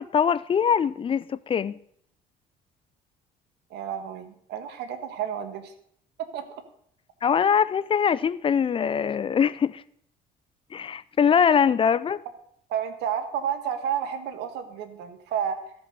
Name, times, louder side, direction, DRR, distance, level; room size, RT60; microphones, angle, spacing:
voice 1, 0.0-1.8 7.2-9.8 10.7-12.2, left 7 dB, 30° left, 0.5 m, -22 dB
voice 2, 3.7-5.7 6.2-6.6 12.7-15.7, right 8 dB, 80° right, 1.5 m, -31 dB
13.5 x 6.1 x 6.7 m
cardioid pair, 110°, 17 cm